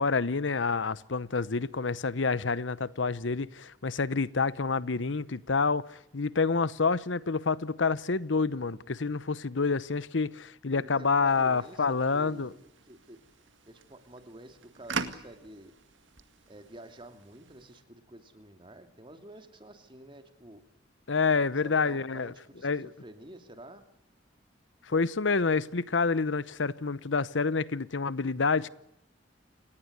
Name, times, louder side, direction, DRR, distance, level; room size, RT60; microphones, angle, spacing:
voice 1, 0.0-12.5 21.1-22.3 22.6-22.9 24.9-28.7, left 4 dB, 85° left, 0.9 m, -28 dB
voice 2, 10.7-13.2 13.7-15.7 16.5-20.6 21.6-23.9, right 1 dB, 25° right, 2.7 m, -49 dB
sound 1, 11.3-17.8, right 4 dB, 90° right, 2.0 m, -43 dB
29.5 x 19.0 x 8.2 m
head